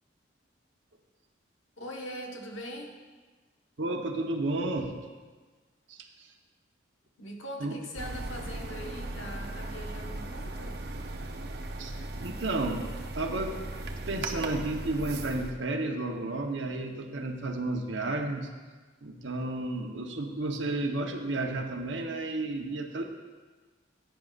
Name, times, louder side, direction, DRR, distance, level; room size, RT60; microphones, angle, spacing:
voice 1, 1.8-3.0 7.2-10.8, equal, 90° left, 1 dB, 1.4 m, -41 dB
voice 2, 3.8-5.0 5.9-6.3 7.6-7.7 11.8-13.6 14.1-18.5 19.0-23.0, right 2 dB, 75° right, 3 dB, 1.0 m, -32 dB
sound 1, 8.0-15.5, right 2 dB, 55° right, 0.7 m, -37 dB
16.0 x 9.1 x 2.5 m, 1.4 s
head